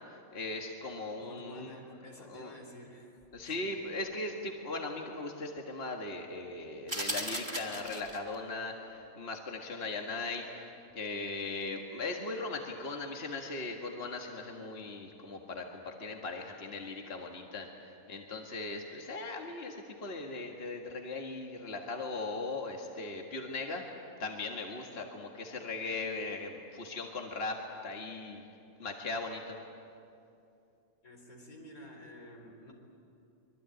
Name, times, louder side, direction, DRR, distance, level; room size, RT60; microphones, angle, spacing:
voice 1, 0.3-1.7 2.3-2.5 3.3-10.7 10.9-17.7 18.1-23.8 24.2-27.6 27.8-28.4 28.8-29.6, left 3 dB, 45° left, 1 dB, 2.0 m, -38 dB
voice 2, 1.2-3.8 31.0-32.7, left 1 dB, 80° left, 2 dB, 4.5 m, -51 dB
sound 1, 6.9-8.4, right 1 dB, 20° right, 2.8 m, -37 dB
25.0 x 23.0 x 9.2 m, 2.6 s
omnidirectional pair, 1.5 m